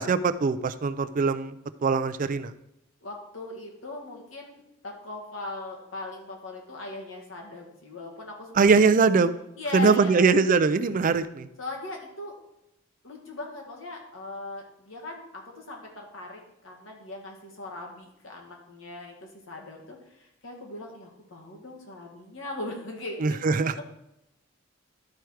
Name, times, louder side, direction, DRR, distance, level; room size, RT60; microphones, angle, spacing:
voice 1, 0.0-1.5 1.8-2.5 8.6-9.4 9.7-11.5 23.2-23.8, right 4 dB, 40° right, 12 dB, 0.4 m, -22 dB
voice 2, 3.0-8.5 9.6-10.3 11.6-12.4 13.0-23.8, left 2 dB, 75° left, 0 dB, 1.9 m, -39 dB
11.5 x 4.5 x 4.8 m, 0.83 s
head